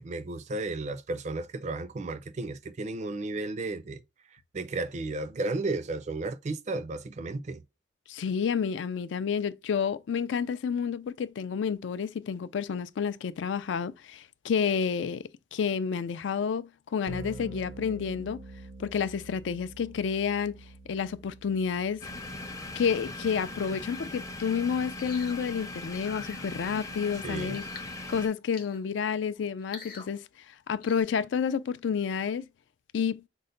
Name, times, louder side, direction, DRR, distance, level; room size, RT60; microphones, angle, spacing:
voice 1, 0.0-4.0 4.3-7.6 27.2-27.6, right 2 dB, 40° right, 0.4 m, -34 dB
voice 2, 8.1-15.2 15.5-18.4 18.8-20.6 20.9-22.0 22.8-27.6 28.1-30.2 30.7-32.5 32.9-33.2, left 6 dB, 70° left, 0.4 m, -30 dB
sound 1, 17.1-27.1, right 2 dB, 80° right, 0.9 m, -48 dB
sound 2, 22.0-28.3, left 2 dB, 15° left, 0.5 m, -40 dB
sound 3, 25.0-25.4 26.0-26.4 27.5-27.9 28.5-28.9 29.6-30.1 30.8-31.0, left 5 dB, 50° left, 0.8 m, -45 dB
5.3 x 2.1 x 3.8 m
head